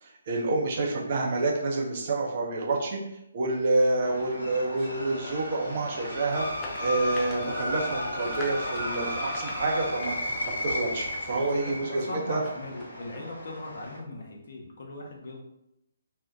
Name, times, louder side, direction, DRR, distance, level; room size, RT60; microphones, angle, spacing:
voice 1, 0.0-3.0 3.3-6.4 6.8-10.3 10.6-12.4, right 2 dB, 45° right, -1 dB, 0.6 m, -28 dB
sound 1, 4.0-14.0, left 1 dB, 70° left, 1.1 m, -34 dB
sound 2, 4.6-14.3, right 1 dB, 5° right, 0.8 m, -50 dB
sound 3, 6.3-11.5, left 2 dB, 15° left, 0.4 m, -46 dB
voice 2, 11.6-15.4, left 2 dB, 55° left, -1 dB, 0.7 m, -39 dB
2.6 x 2.1 x 3.6 m, 0.82 s
figure-of-eight pair, 140°, 0 cm